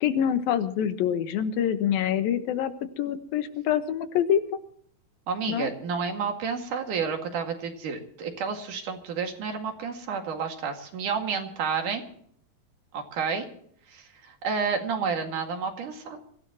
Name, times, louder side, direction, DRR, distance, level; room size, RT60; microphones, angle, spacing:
voice 1, 0.0-4.4 5.5-5.7, left 9 dB, 85° left, 9 dB, 3.0 m, -26 dB
voice 2, 5.3-12.0 12.9-13.5 13.9-16.2, right 5 dB, 65° right, 4 dB, 3.5 m, -30 dB
24.0 x 16.5 x 3.0 m, 0.62 s
omnidirectional pair, 4.1 m